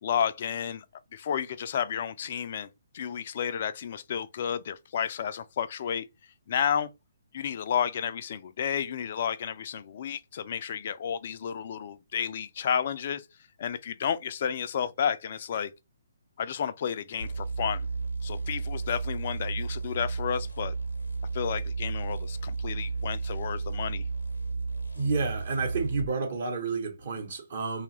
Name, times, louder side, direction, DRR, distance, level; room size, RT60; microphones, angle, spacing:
voice 1, 0.0-0.8 1.1-2.7 2.9-6.0 6.5-6.9 7.3-13.3 13.6-15.7 16.4-17.9 18.2-20.7 21.3-24.0, left 8 dB, 45° left, 0.3 m, -31 dB
sound 1, 17.2-26.1, right 4 dB, 75° left, 0.6 m, -33 dB
voice 2, 24.9-27.8, right 4 dB, 50° right, 0.9 m, -30 dB
3.1 x 2.3 x 3.0 m
figure-of-eight pair, 130°, 0 cm